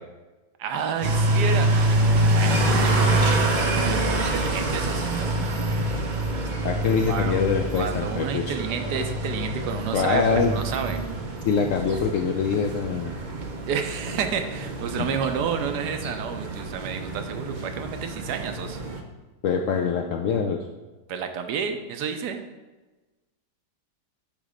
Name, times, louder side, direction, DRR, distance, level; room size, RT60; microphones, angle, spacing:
voice 1, 0.6-3.0 3.8-5.3 7.1-7.5 7.7-11.0 13.7-18.8 21.1-22.5, right 7 dB, 75° right, 6 dB, 1.2 m, -30 dB
sound 1, 1.0-19.0, right 1 dB, 60° right, 0.4 m, -26 dB
voice 2, 6.6-8.5 9.9-10.5 11.5-13.1 15.0-15.1 19.4-20.6, left 6 dB, 70° left, 3 dB, 0.7 m, -24 dB
8.9 x 3.1 x 5.0 m, 1.2 s
omnidirectional pair, 1.8 m